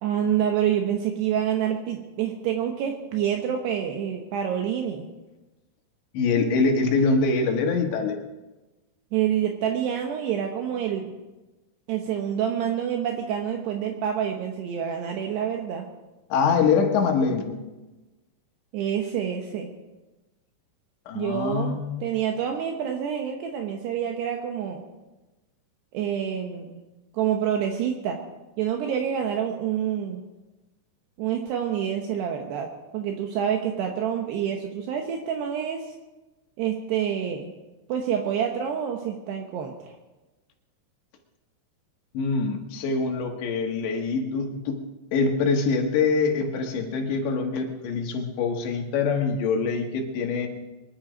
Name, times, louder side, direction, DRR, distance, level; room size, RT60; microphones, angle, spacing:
voice 1, 0.0-5.1 9.1-11.2 11.9-15.9 18.7-19.7 21.1-24.8 25.9-26.8 27.1-28.2 28.6-30.2 31.2-32.7 32.9-35.9 36.6-37.5 37.9-40.0, right 9 dB, 75° right, 3 dB, 3.0 m, -27 dB
voice 2, 6.1-8.2 16.3-17.6 21.1-22.1 42.1-44.8 45.1-50.5, left 4 dB, 75° left, 2 dB, 3.8 m, -24 dB
24.0 x 11.0 x 5.1 m, 1.1 s
omnidirectional pair, 5.2 m